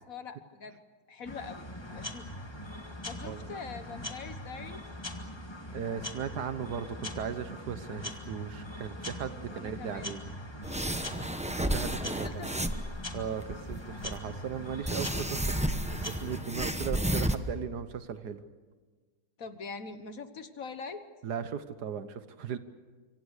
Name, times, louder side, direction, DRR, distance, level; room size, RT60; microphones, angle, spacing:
voice 1, 0.1-0.8 1.1-2.3 3.0-4.8 9.5-10.1 12.0-12.7 19.4-21.0, left 5 dB, 55° left, 9 dB, 1.7 m, -43 dB
sound 1, 1.2-16.4, left 1 dB, 15° left, 2.0 m, -42 dB
voice 2, 5.7-10.2 11.6-12.6 13.1-18.4 21.2-22.6, right 7 dB, 70° right, 11 dB, 1.6 m, -37 dB
sound 2, 10.6-12.9 13.4-14.2 14.9-17.4, right 1 dB, 5° right, 0.7 m, -32 dB
26.0 x 24.5 x 6.6 m, 1.4 s
omnidirectional pair, 1.8 m